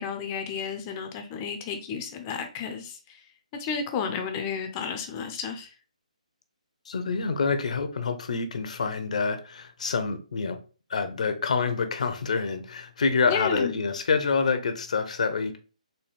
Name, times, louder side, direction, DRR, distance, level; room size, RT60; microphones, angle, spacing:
voice 1, 0.0-3.2 3.6-5.7 13.3-13.7, left 6 dB, 25° left, 6 dB, 0.5 m, -32 dB
voice 2, 6.9-10.6 10.9-15.6, left 5 dB, 60° left, 8 dB, 0.7 m, -27 dB
4.0 x 2.2 x 3.4 m, 0.36 s
hypercardioid pair, 155°, 4 cm